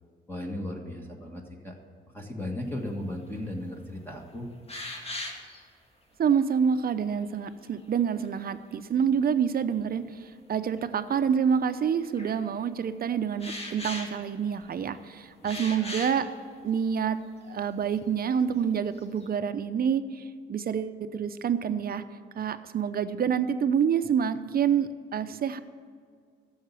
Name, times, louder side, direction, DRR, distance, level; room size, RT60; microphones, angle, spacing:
voice 1, 0.3-1.7 2.1-4.5 15.4-15.9, left 1 dB, 10° left, 0 dB, 1.6 m, -36 dB
sound 1, 3.3-3.5 4.0-4.1 4.7-5.6 7.8-8.5 9.8-9.9 10.8-10.9 12.0-12.4 13.4-14.8 15.4-16.3 16.9-17.0 17.3-17.4 17.8-18.3 18.6-19.3, left 1 dB, 30° left, 2.3 m, -39 dB
voice 2, 6.2-16.3 16.6-17.2 17.5-22.0 22.3-25.6, right 7 dB, 50° right, 11 dB, 0.7 m, -27 dB
11.0 x 7.2 x 8.3 m, 2.1 s
cardioid pair, 90°, 20 cm